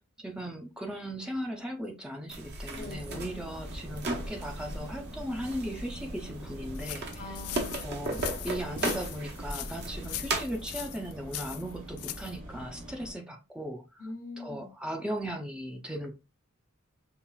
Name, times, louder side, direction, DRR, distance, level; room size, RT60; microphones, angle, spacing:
voice 1, 0.0-7.4 7.8-14.0 14.4-16.1, equal, 5° right, 0.5 m, -37 dB
sound 1, 2.3-10.4, right 2 dB, 50° right, 0.9 m, -36 dB
voice 2, 2.7-3.3 7.2-7.8 14.0-14.7, left 2 dB, 40° left, 0.6 m, -44 dB
sound 2, 2.8-13.1, right 1 dB, 85° right, 2.3 m, -45 dB
sound 3, 6.7-12.4, left 14 dB, 90° left, 0.4 m, -40 dB
5.5 x 2.4 x 2.3 m
head